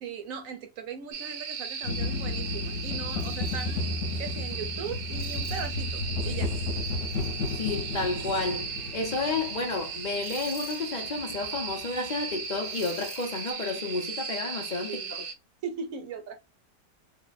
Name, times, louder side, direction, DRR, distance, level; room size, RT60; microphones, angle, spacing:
voice 1, 0.0-3.8 4.2-6.5 14.9-15.1 15.6-16.4, right 6 dB, 60° right, 1.0 m, -39 dB
sound 1, 1.1-15.3, right 6 dB, 80° right, 1.3 m, -37 dB
sound 2, 1.8-13.5, left 3 dB, 50° left, 1.1 m, -34 dB
voice 2, 7.5-15.0, left 3 dB, 90° left, 0.4 m, -31 dB
3.3 x 2.2 x 4.0 m
omnidirectional pair, 1.9 m